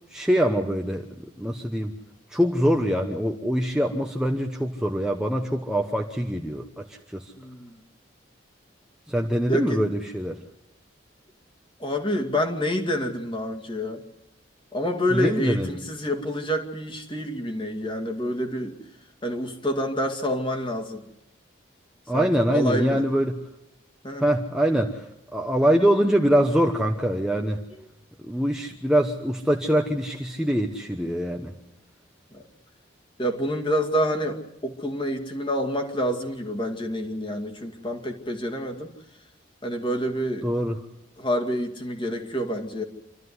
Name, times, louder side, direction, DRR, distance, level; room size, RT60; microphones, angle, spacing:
voice 1, 0.1-1.9 2.3-7.3 9.1-10.4 15.1-15.7 22.1-23.3 24.2-25.1 25.3-27.6 28.2-31.6 40.4-40.8, equal, 5° right, 1 dB, 1.0 m, -24 dB
voice 2, 7.4-7.8 9.5-9.8 11.8-14.0 14.7-18.8 19.2-21.0 22.1-23.0 24.0-24.3 32.3-32.5 33.2-38.9 39.6-40.5 41.2-42.8, equal, 25° left, 3 dB, 2.2 m, -28 dB
27.5 x 13.5 x 9.6 m, 0.84 s
head